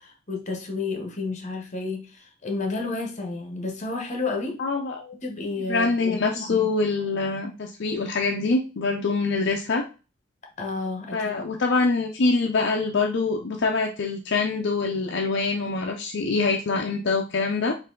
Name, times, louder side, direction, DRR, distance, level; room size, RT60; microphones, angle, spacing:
voice 1, 0.0-4.6 5.2-6.7 10.6-11.4, left 3 dB, 40° left, 4 dB, 1.0 m, -31 dB
voice 2, 4.6-5.2 5.7-9.8 11.1-17.7, left 3 dB, 65° left, 1 dB, 0.6 m, -24 dB
4.4 x 2.7 x 3.8 m, 0.32 s
head